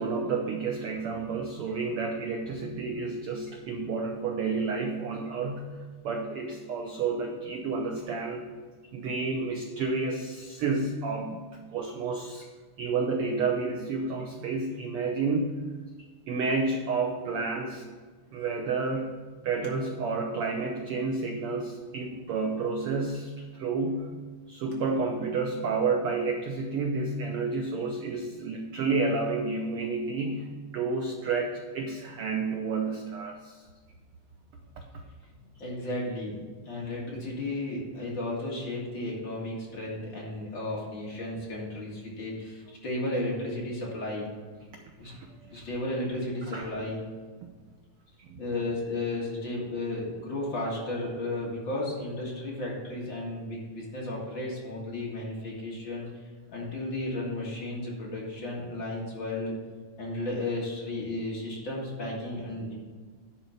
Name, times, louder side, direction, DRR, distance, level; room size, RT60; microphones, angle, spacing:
voice 1, 0.0-8.5 8.9-11.4 11.7-12.5 12.8-15.6 16.3-17.9 18.3-19.2 19.4-24.1 24.5-33.6 45.0-45.6 46.5-46.7 48.2-48.4, right 4 dB, 85° right, 2 dB, 1.2 m, -30 dB
voice 2, 35.6-36.4 36.7-44.3 45.0-45.1 45.5-47.0 48.4-56.1 56.5-59.6 60.0-62.7, left 1 dB, 45° left, -4 dB, 2.2 m, -33 dB
10.5 x 4.4 x 6.9 m, 1.5 s
omnidirectional pair, 3.5 m